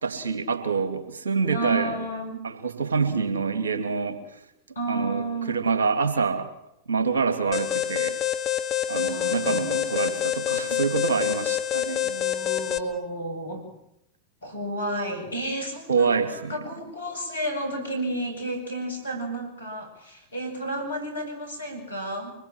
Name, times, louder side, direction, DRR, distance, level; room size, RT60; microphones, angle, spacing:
voice 1, 0.0-1.9 2.4-4.4 4.9-6.5 6.9-8.2 8.9-12.0 15.9-16.6, right 5 dB, 70° right, 8 dB, 3.0 m, -26 dB
voice 2, 1.5-2.4 4.8-5.6 8.9-10.2 12.0-13.7 14.4-22.3, right 1 dB, 80° left, 5 dB, 7.5 m, -32 dB
Alarm, 7.5-12.8, left 11 dB, 35° left, 2.2 m, -27 dB
25.5 x 21.0 x 7.5 m, 0.82 s
figure-of-eight pair, 90°, 0 cm